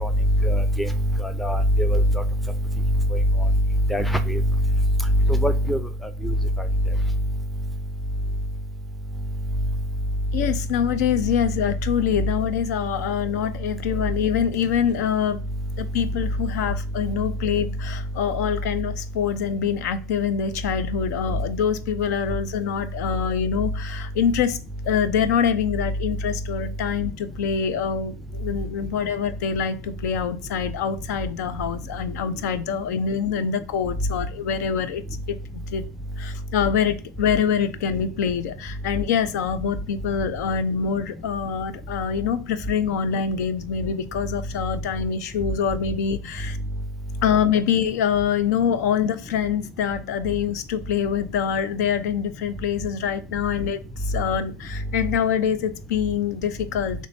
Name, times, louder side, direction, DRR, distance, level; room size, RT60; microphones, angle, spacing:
voice 1, 0.4-0.9 1.4-2.0 3.9-4.4 5.3-5.8, equal, ahead, 0.5 m, -21 dB
voice 2, 10.3-15.4 15.8-24.6 24.8-35.0 35.3-35.4 35.7-35.8 36.2-46.6 47.2-57.1, left 7 dB, 65° left, 0.5 m, -25 dB
3.9 x 3.2 x 3.3 m
hypercardioid pair, 100°, 9 cm